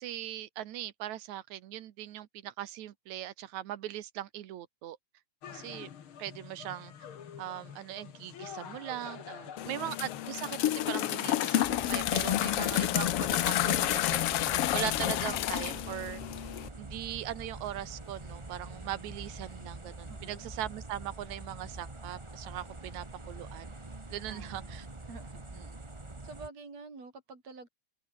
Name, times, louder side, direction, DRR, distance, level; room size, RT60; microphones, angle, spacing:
voice 1, 0.0-5.0 5.5-5.9 6.2-6.9 7.4-9.2 9.7-16.2 16.8-23.7 24.1-24.8, right 13 dB, 65° right, 2.3 m, -40 dB
sound 1, 5.4-12.7, left 8 dB, 45° left, 2.1 m, -46 dB
voice 2, 9.2-9.9 20.1-20.5 24.3-24.8 25.0-25.5 26.2-27.7, right 3 dB, 50° right, 6.5 m, -49 dB
sound 2, 9.6-16.7, left 13 dB, 85° left, 1.3 m, -30 dB
sound 3, 11.6-26.5, right 2 dB, 30° right, 0.5 m, -45 dB
omnidirectional pair, 3.9 m